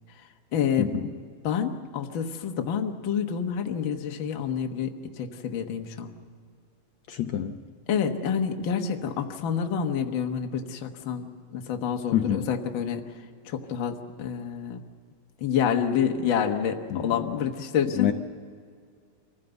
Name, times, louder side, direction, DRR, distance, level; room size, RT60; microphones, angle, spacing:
voice 1, 0.2-1.0 1.4-6.2 7.9-13.1 13.5-14.8 15.4-18.1, left 7 dB, 50° left, 4 dB, 1.7 m, -28 dB
voice 2, 0.8-1.1 7.1-7.6 12.1-12.5 16.9-17.1 18.0-18.1, left 10 dB, 70° left, 5 dB, 2.0 m, -26 dB
26.0 x 16.0 x 8.0 m, 2.2 s
omnidirectional pair, 3.4 m